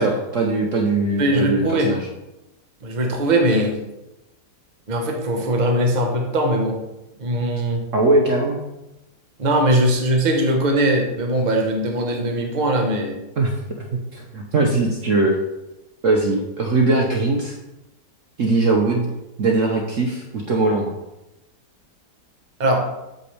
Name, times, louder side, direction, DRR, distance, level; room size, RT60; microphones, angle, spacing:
voice 1, 0.0-2.1 7.9-8.6 13.4-13.9 14.1-15.4 16.0-17.6 18.4-19.1 19.4-20.9, right 2 dB, 55° right, 1 dB, 1.1 m, -20 dB
voice 2, 1.2-1.9 2.8-3.7 4.9-6.8 7.2-7.8 9.4-13.2 22.6-22.9, right 1 dB, 30° right, 2 dB, 1.1 m, -20 dB
8.2 x 7.0 x 3.3 m, 0.95 s
omnidirectional pair, 1.8 m